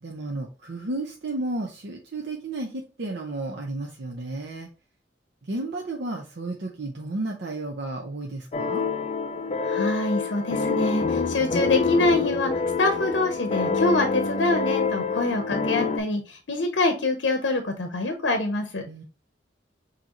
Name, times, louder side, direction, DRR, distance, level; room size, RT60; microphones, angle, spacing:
voice 1, 0.0-4.7 5.4-8.9 18.9-19.0, right 2 dB, 65° right, 1 dB, 0.7 m, -32 dB
sound 1, 8.5-16.0, left 4 dB, 35° left, 0.4 m, -26 dB
voice 2, 9.6-12.5 12.8-19.0, left 2 dB, 90° left, 6 dB, 0.7 m, -25 dB
6.2 x 2.9 x 2.9 m, 0.31 s
head